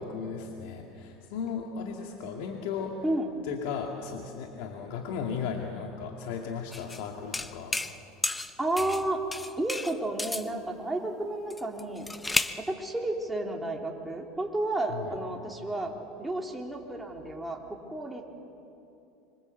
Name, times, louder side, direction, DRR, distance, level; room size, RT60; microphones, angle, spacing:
voice 1, 0.0-3.0 3.4-7.8 14.9-15.1, left 6 dB, 75° left, 1 dB, 2.3 m, -36 dB
sound 1, 6.7-7.0 7.3-8.0 8.2-9.0 9.3-10.5 11.5-12.6, left 2 dB, 10° left, 0.8 m, -32 dB
voice 2, 8.6-9.2 9.6-12.1 12.6-18.3, right 1 dB, 5° right, 0 dB, 3.2 m, -32 dB
26.0 x 24.5 x 8.2 m, 2.8 s
supercardioid pair, 125°, 0 cm